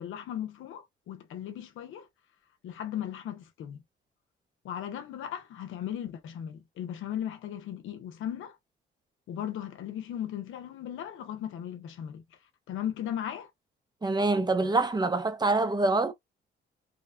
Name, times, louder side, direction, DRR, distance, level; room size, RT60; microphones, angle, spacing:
voice 1, 0.0-2.1 2.6-3.8 4.6-8.6 9.3-12.2 12.7-13.5, left 10 dB, 80° left, 0.7 m, -37 dB
voice 2, 14.0-16.1, right 2 dB, 20° right, 0.6 m, -25 dB
3.2 x 2.1 x 2.5 m
cardioid pair, 90°, 20 cm